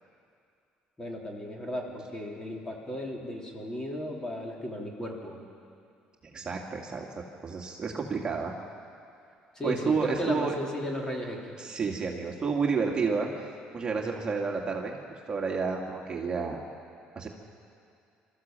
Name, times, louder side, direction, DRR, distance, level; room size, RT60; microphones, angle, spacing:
voice 1, 1.0-5.4 9.5-11.4, left 1 dB, 20° left, -1 dB, 3.4 m, -35 dB
voice 2, 6.3-7.1 7.4-8.6 9.6-10.6 11.6-15.0 15.3-16.6 17.2-17.3, right 5 dB, 30° right, 0 dB, 2.1 m, -30 dB
24.0 x 14.0 x 7.6 m, 2.4 s
cardioid pair, 110°, 3 cm